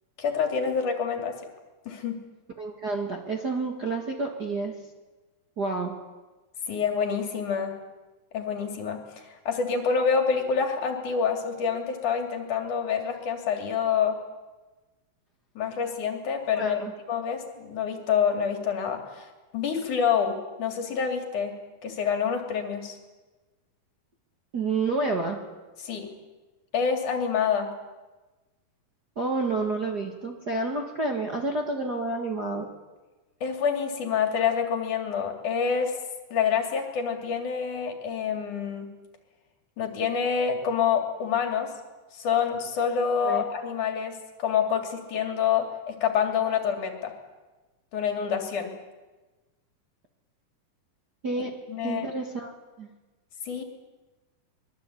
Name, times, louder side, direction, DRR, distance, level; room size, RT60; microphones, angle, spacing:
voice 1, 0.2-1.3 1.9-2.2 6.7-7.7 8.3-14.2 15.6-16.8 17.1-21.5 21.8-23.0 25.8-26.1 26.7-27.7 33.4-35.9 36.3-38.9 39.8-41.7 42.1-47.1 47.9-48.7 51.7-52.1 53.5-53.6, left 7 dB, 60° left, 4 dB, 4.0 m, -27 dB
voice 2, 2.6-4.7 5.6-5.9 16.6-16.9 24.5-25.4 29.1-32.7 43.2-43.4 51.2-51.5 51.8-52.5 52.8-52.9, right 3 dB, 35° right, 2 dB, 1.8 m, -29 dB
24.0 x 21.0 x 8.5 m, 1.2 s
omnidirectional pair, 4.0 m